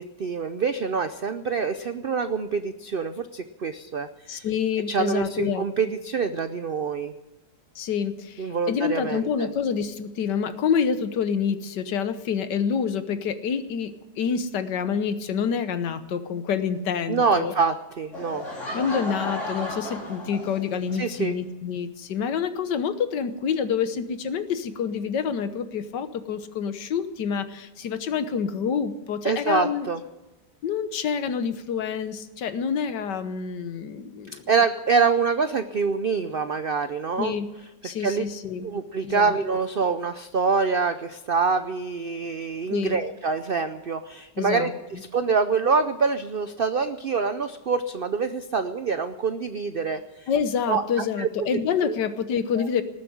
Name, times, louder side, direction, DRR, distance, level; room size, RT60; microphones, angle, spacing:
voice 1, 0.0-4.5 4.9-7.1 8.4-9.5 17.1-18.4 21.0-21.3 29.2-30.0 34.5-37.3 37.8-38.2 38.6-50.0 50.7-51.5 51.9-52.0 52.6-52.7, right 5 dB, 70° right, 10 dB, 0.5 m, -25 dB
voice 2, 4.3-5.6 7.7-17.5 18.7-29.9 30.6-34.4 37.2-37.5 37.8-38.7 39.0-39.3 42.7-43.0 44.4-44.7 50.3-52.8, left 7 dB, 80° left, 11 dB, 1.6 m, -27 dB
Laughter / Crowd, 18.1-21.0, left 1 dB, 45° left, 4.0 m, -33 dB
19.5 x 7.5 x 9.9 m, 1.1 s
omnidirectional pair, 1.8 m